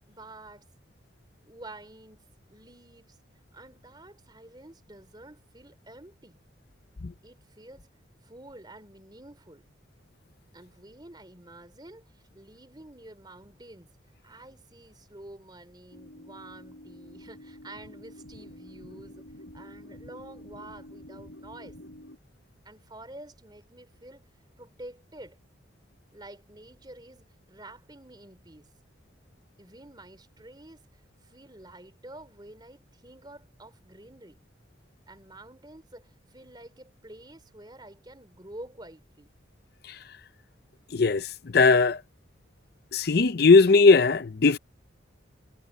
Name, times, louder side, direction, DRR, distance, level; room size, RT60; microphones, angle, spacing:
voice 1, 0.1-0.7 1.4-3.2 3.5-6.4 7.2-7.9 8.2-9.7 10.5-13.9 14.2-21.8 22.6-24.3 24.6-25.4 26.1-28.7 29.6-34.4 35.1-39.4, right 1 dB, 20° right, 3.7 m, -49 dB
sound 1, 15.9-22.2, left 1 dB, 75° left, 4.4 m, -48 dB
voice 2, 40.9-41.3 41.5-42.0 42.9-44.6, left 4 dB, 55° left, 0.6 m, -18 dB
head